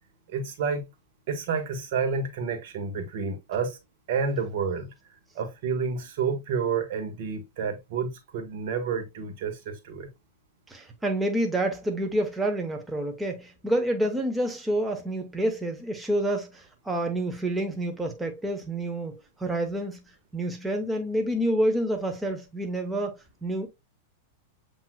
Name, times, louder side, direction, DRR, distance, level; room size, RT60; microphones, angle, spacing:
voice 1, 0.3-0.9 1.3-3.8 4.1-4.9 5.3-10.1, right 5 dB, 60° right, 1.3 m, -29 dB
voice 2, 10.7-20.0 20.3-23.7, right 1 dB, 10° right, 0.9 m, -28 dB
7.2 x 3.0 x 2.2 m
hypercardioid pair, 110°, 0 cm